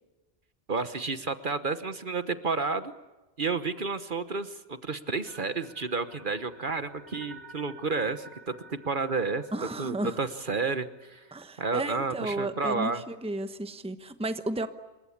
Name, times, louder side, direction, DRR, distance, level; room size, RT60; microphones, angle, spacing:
voice 1, 0.7-2.9 3.4-9.4 9.8-11.2 11.6-13.0, right 4 dB, 50° right, 11 dB, 1.3 m, -31 dB
sound 1, 5.2-11.4, right 2 dB, 90° right, 4.1 m, -51 dB
voice 2, 9.5-10.2 11.3-14.7, right 2 dB, 5° right, 10 dB, 1.0 m, -33 dB
27.5 x 23.0 x 8.6 m, 1.1 s
omnidirectional pair, 1.2 m